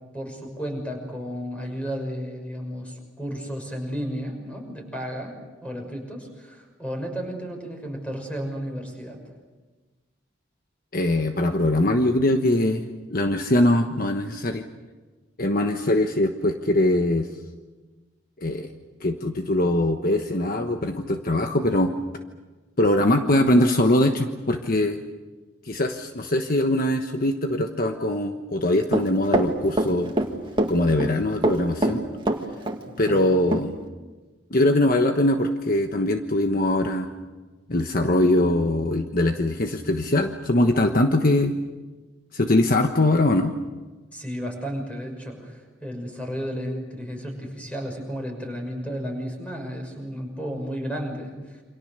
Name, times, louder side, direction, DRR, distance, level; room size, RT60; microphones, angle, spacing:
voice 1, 0.1-5.3 5.6-9.2 33.1-33.2 44.1-51.6, equal, 5° left, 2 dB, 6.2 m, -33 dB
voice 2, 10.9-12.8 13.1-14.6 15.4-17.3 18.4-18.7 19.0-21.9 22.8-25.0 25.6-30.1 30.7-32.0 33.0-33.7 34.5-37.1 37.7-41.6 42.3-43.5, left 1 dB, 50° left, 5 dB, 1.3 m, -22 dB
Run, 28.9-30.3 30.6-31.1 31.4-32.8 33.1-33.2 33.5-33.6, right 1 dB, 25° right, 2.1 m, -23 dB
28.5 x 26.0 x 6.7 m, 1.3 s
head